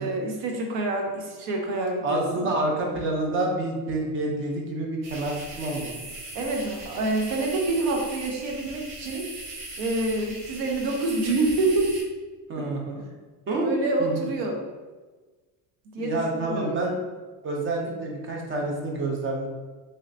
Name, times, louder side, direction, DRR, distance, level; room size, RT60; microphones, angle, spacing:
voice 1, 0.0-2.6 6.3-9.3 9.8-11.9 12.6-12.7 13.5-14.6 15.9-17.0, right 2 dB, 80° right, 1 dB, 0.8 m, -27 dB
voice 2, 2.0-6.0 12.5-13.0 13.5-13.7 14.0-14.3 16.0-16.9 17.4-19.5, right 2 dB, 30° right, 0 dB, 0.4 m, -28 dB
sound 1, 5.0-12.0, right 2 dB, 50° right, 0.8 m, -39 dB
3.1 x 3.1 x 2.5 m, 1.3 s
cardioid pair, 165°, 44 cm